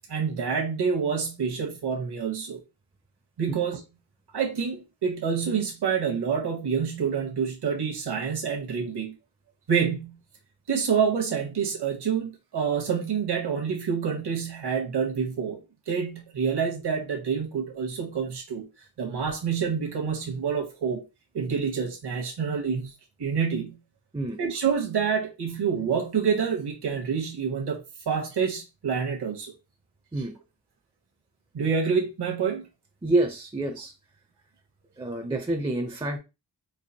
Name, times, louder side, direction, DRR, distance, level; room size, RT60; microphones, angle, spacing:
voice 1, 0.1-2.6 3.4-3.8 4.3-9.1 9.7-10.2 10.7-15.6 15.9-18.7 19.0-21.0 21.3-22.9 23.2-23.8 24.4-29.5 31.5-32.7, right 6 dB, 65° right, 0.9 m, -27 dB
voice 2, 33.0-33.9 35.0-36.2, right 2 dB, 15° right, 0.4 m, -27 dB
4.5 x 2.4 x 2.7 m
wide cardioid pair, 135°, 43 cm